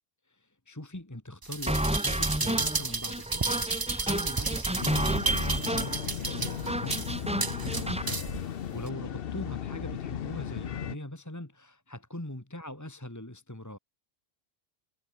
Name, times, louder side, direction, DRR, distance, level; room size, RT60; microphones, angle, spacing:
voice 1, 0.2-13.8, left 1 dB, 15° left, 2.3 m, -42 dB
sound 1, 1.4-8.4 8.9-9.0, right 4 dB, 25° right, 0.7 m, -32 dB
sound 2, 1.7-8.1, right 1 dB, 5° right, 1.3 m, -31 dB
sound 3, 4.8-11.0, left 9 dB, 65° left, 0.9 m, -36 dB
omnidirectional pair, 1.1 m